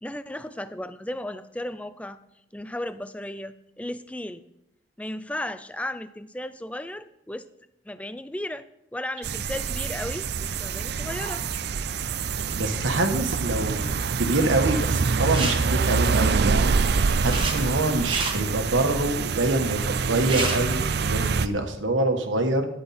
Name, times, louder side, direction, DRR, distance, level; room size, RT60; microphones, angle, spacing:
voice 1, 0.0-2.2 2.5-4.4 5.0-7.5 7.9-8.7 8.9-11.4, left 1 dB, 5° left, 13 dB, 0.5 m, -35 dB
sound 1, 9.2-21.5, right 5 dB, 55° right, 0.5 m, -26 dB
voice 2, 12.5-13.9 14.2-16.8 17.2-22.7, right 2 dB, 80° right, 5 dB, 1.6 m, -25 dB
sound 2, 15.2-15.5 16.7-17.5 17.9-18.3 19.9-20.0 20.1-20.6, right 3 dB, 25° right, 1.5 m, -29 dB
13.5 x 9.8 x 4.3 m, 0.82 s
head